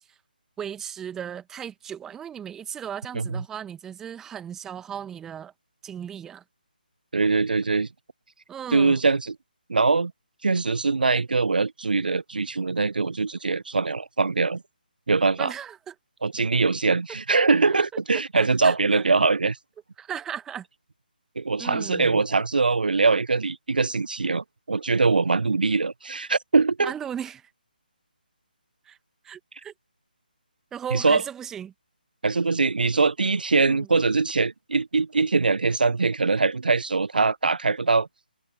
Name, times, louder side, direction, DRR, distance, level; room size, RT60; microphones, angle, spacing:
voice 1, 0.6-5.5 5.8-6.4 8.5-9.0 15.4-15.9 18.3-19.0 20.0-20.6 21.6-22.2 26.8-27.5 28.9-29.0 29.2-29.7 30.7-31.7 33.5-33.9, right 9 dB, 10° right, 1.5 m, -36 dB
voice 2, 7.1-7.9 8.7-9.3 9.7-10.1 10.4-14.6 15.1-15.5 16.2-19.6 21.4-26.9 30.9-31.2 32.2-38.1, right 4 dB, 65° right, 0.7 m, -22 dB
figure-of-eight pair, 145°, 5 cm